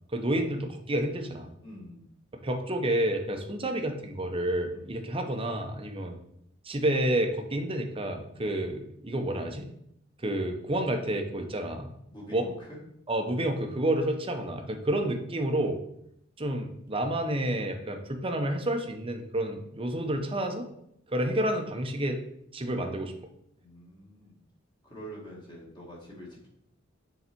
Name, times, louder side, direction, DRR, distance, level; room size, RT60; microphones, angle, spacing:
voice 1, 0.1-1.5 2.4-6.1 6.6-9.7 10.2-11.9 12.3-12.4 13.1-15.8 16.4-20.7 21.1-22.2 22.5-23.1, right 1 dB, 25° right, 4 dB, 0.8 m, -29 dB
voice 2, 1.6-2.0 4.7-4.9 8.3-8.5 12.1-12.8 23.6-24.4 24.8-26.5, equal, 25° left, -4 dB, 1.8 m, -45 dB
6.9 x 4.0 x 4.5 m, 0.75 s
head